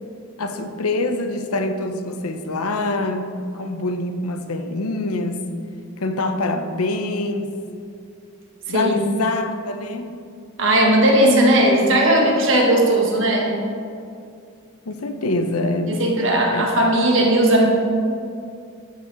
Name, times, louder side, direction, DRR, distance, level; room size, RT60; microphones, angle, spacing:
voice 1, 0.4-5.4 6.0-7.5 8.7-10.1 14.9-16.6, left 2 dB, 90° left, 7 dB, 0.8 m, -25 dB
voice 2, 10.6-13.5 15.9-17.7, right 1 dB, 60° right, 0 dB, 1.7 m, -17 dB
13.0 x 6.2 x 4.0 m, 2.4 s
head